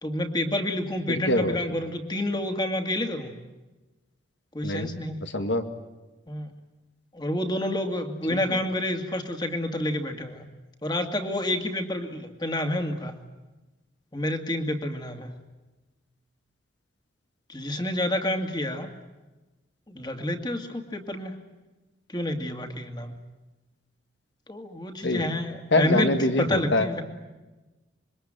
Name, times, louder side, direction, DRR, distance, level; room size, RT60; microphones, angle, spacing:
voice 1, 0.0-3.3 4.5-5.2 6.3-6.5 7.1-10.5 10.8-13.2 14.1-15.3 17.5-18.9 19.9-21.3 22.1-23.2 24.5-27.0, left 1 dB, 25° left, 5 dB, 2.3 m, -29 dB
voice 2, 1.1-1.6 4.6-4.9 5.2-5.6 8.3-8.6 25.0-25.3 25.7-27.0, left 1 dB, 80° left, 7 dB, 2.1 m, -25 dB
26.0 x 23.0 x 9.0 m, 1.1 s
head